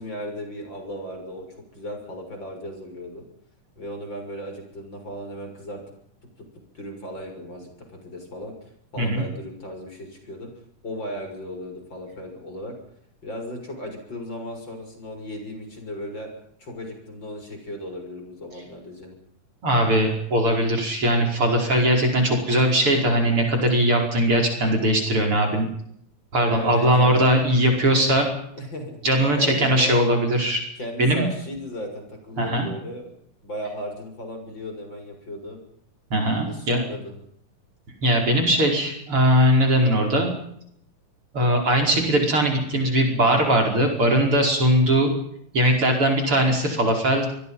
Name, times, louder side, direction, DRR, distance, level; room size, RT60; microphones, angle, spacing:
voice 1, 0.0-1.5 1.7-3.2 3.8-5.8 6.7-7.7 8.0-10.5 10.8-12.8 13.2-16.3 16.6-19.2 26.5-27.3 28.6-29.0 29.3-30.0 30.8-33.1 33.4-35.6 36.4-37.2, equal, 35° left, 4 dB, 7.3 m, -36 dB
voice 2, 19.6-25.7 26.3-28.3 29.0-30.6 31.0-31.3 32.4-32.7 36.1-36.9 38.0-40.3 41.3-45.1 45.5-47.3, right 1 dB, 40° right, 2 dB, 5.9 m, -20 dB
27.0 x 23.0 x 5.7 m, 0.70 s
omnidirectional pair, 3.8 m